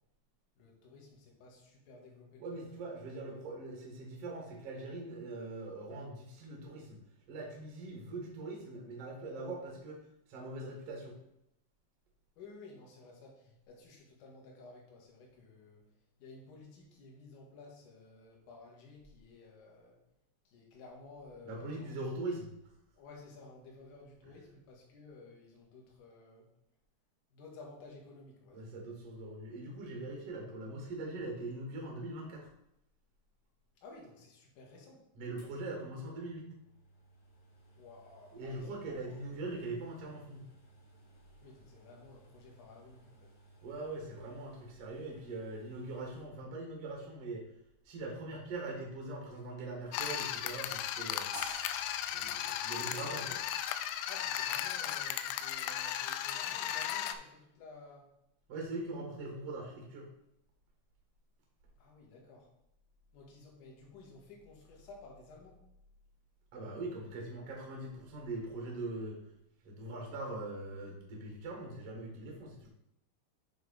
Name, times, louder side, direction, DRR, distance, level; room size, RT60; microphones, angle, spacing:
voice 1, 0.6-2.5 12.4-15.8 16.2-20.0 20.4-21.9 22.9-26.5 27.3-28.7 33.8-35.1 37.8-39.2 41.4-43.3 53.1-53.3 54.1-58.2 61.8-62.5 63.1-65.6, left 3 dB, 60° left, -2 dB, 2.2 m, -54 dB
voice 2, 2.4-7.0 7.3-10.0 10.3-11.2 21.4-22.5 24.2-24.3 28.5-32.5 35.1-36.5 38.3-40.4 43.6-47.4 47.8-51.3 52.1-53.4 58.5-60.1 66.5-69.2 69.6-72.7, right 2 dB, 80° right, -1 dB, 1.3 m, -42 dB
sound 1, 35.4-46.3, right 2 dB, 45° left, 2.3 m, -61 dB
sound 2, 49.9-57.2, left 11 dB, 85° left, 3.1 m, -36 dB
sound 3, 51.3-54.4, equal, 25° right, 1.1 m, -50 dB
9.0 x 3.6 x 4.8 m, 0.81 s
omnidirectional pair, 5.9 m